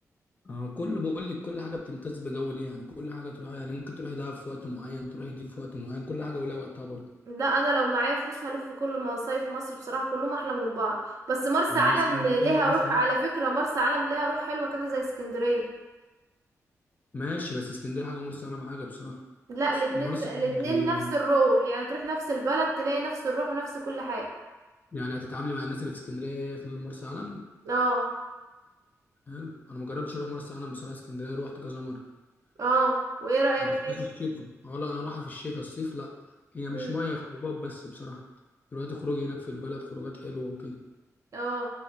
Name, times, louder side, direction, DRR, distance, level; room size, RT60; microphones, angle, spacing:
voice 1, 0.4-7.0 11.7-13.0 17.1-19.2 19.9-21.1 24.9-27.4 29.3-32.0 33.6-36.1 36.5-38.2 38.7-40.8, left 2 dB, 30° left, 0 dB, 0.4 m, -35 dB
voice 2, 7.3-15.6 19.5-24.3 27.7-28.0 32.6-34.0 36.7-37.0 41.3-41.7, right 2 dB, 65° right, -1 dB, 0.5 m, -27 dB
2.1 x 2.1 x 3.8 m, 1.1 s
cardioid pair, 95°, 6 cm